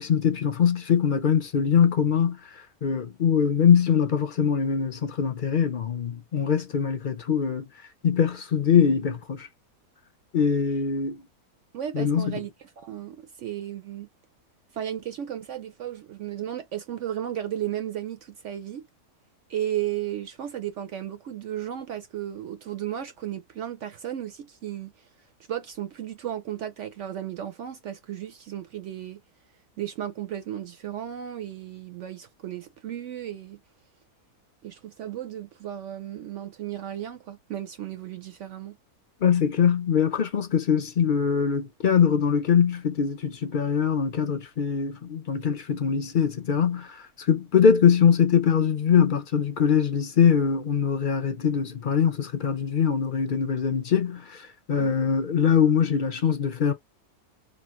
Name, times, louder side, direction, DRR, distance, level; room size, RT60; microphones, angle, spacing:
voice 1, 0.0-2.4 2.8-7.7 8.0-9.5 10.3-11.2 11.9-12.4 39.2-56.7, left 7 dB, 55° left, 0.6 m, -22 dB
voice 2, 11.7-12.5 12.8-14.1 14.7-18.9 19.5-24.9 25.5-29.2 29.8-33.6 34.6-38.8 54.8-55.0, right 11 dB, 65° right, 0.8 m, -34 dB
3.1 x 2.4 x 2.9 m
omnidirectional pair, 1.6 m